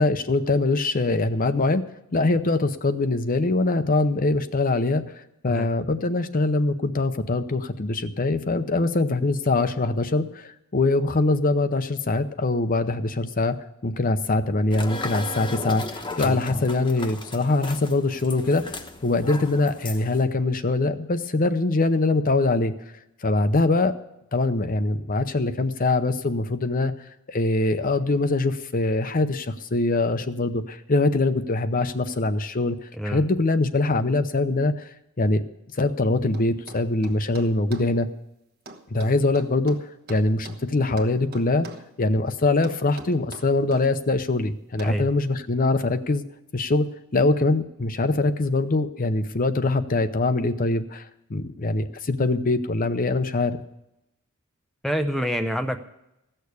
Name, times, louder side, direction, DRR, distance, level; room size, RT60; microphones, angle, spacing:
voice 1, 0.0-1.8 2.1-5.0 5.4-13.6 13.8-15.8 16.2-22.7 23.2-23.9 24.3-26.9 27.3-32.8 33.0-34.9 35.2-35.4 35.8-38.1 38.9-39.8 40.1-41.7 42.0-46.3 46.5-46.9 47.1-53.6, left 2 dB, 40° left, 10 dB, 0.7 m, -23 dB
sound 1, 14.7-20.2, left 2 dB, 20° left, 1.0 m, -35 dB
voice 2, 16.2-16.6 33.0-33.2 44.8-45.1 54.8-55.8, equal, ahead, 5 dB, 0.5 m, -27 dB
sound 2, 36.3-37.9 38.7-40.6 41.0-41.9 42.6-43.9 44.8-45.0, right 2 dB, 45° right, 1.2 m, -43 dB
15.5 x 6.7 x 8.2 m, 0.87 s
head